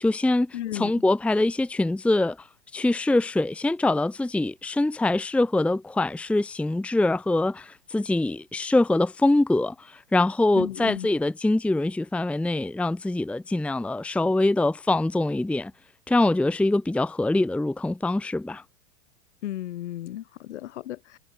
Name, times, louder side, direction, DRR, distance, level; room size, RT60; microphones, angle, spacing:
voice 1, 0.0-2.5 2.7-15.7 16.1-18.6, left 2 dB, 5° left, 0.9 m, -24 dB
voice 2, 0.5-0.9 10.6-11.1 19.4-21.2, left 13 dB, 65° left, 4.8 m, -34 dB
hypercardioid pair, 95°, 37 cm